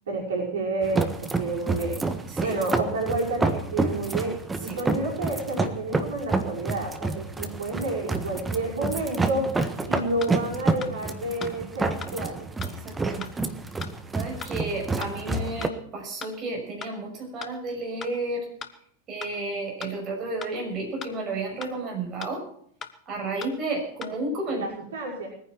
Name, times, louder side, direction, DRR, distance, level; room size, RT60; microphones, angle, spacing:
voice 1, 0.1-2.0 2.4-4.4 4.6-9.5 9.9-12.5 24.5-25.3, right 2 dB, 60° right, -2 dB, 5.6 m, -30 dB
sound 1, 0.8-15.7, right 3 dB, 10° right, 1.5 m, -29 dB
sound 2, 10.2-10.3 10.8-10.9 11.4-11.5 12.0-12.1 12.6-12.7 13.2-13.3 13.8-13.9 14.4-14.5 15.0-15.1 15.6-15.7 16.2-16.3 16.8-16.9 17.4-17.5 18.0-18.1 18.6-18.7 19.2-19.3 19.8-19.9 20.4-20.5 21.0-21.1 21.6-21.7 22.2-22.3 22.8-22.9 23.4-23.5 24.0-24.1, left 7 dB, 25° left, 1.3 m, -37 dB
voice 2, 12.7-13.3 14.1-18.4 19.1-22.4 23.1-24.6, right 2 dB, 30° right, 0 dB, 6.2 m, -32 dB
21.0 x 10.0 x 6.1 m, 0.64 s
figure-of-eight pair, 90°, 0 cm